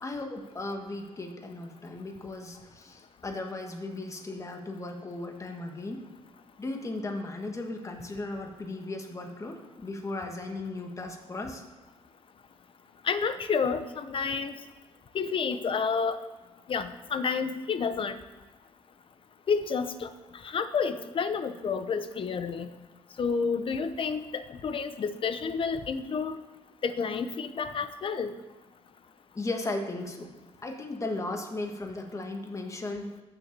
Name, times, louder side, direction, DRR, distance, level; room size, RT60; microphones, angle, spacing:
voice 1, 0.0-6.0 6.6-11.6 29.4-30.4 30.6-33.1, left 2 dB, 25° left, 4 dB, 1.8 m, -36 dB
voice 2, 13.0-14.6 15.1-16.2 16.7-18.2 19.5-20.1 20.4-22.7 23.2-26.4 26.8-28.3, left 5 dB, 50° left, 11 dB, 0.9 m, -30 dB
14.0 x 7.0 x 6.8 m, 1.2 s
cardioid pair, 115°, 11 cm